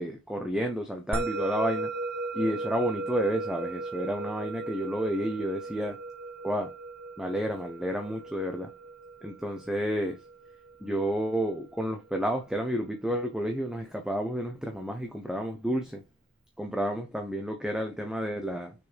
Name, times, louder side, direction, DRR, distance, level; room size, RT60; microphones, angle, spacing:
voice 1, 0.0-1.9 2.3-6.0 6.4-6.7 7.2-8.7 9.2-10.2 10.8-16.0 16.6-18.7, equal, 5° right, 0.9 m, -30 dB
Musical instrument, 1.1-11.7, right 3 dB, 45° right, 0.8 m, -37 dB
6.8 x 6.0 x 3.5 m
head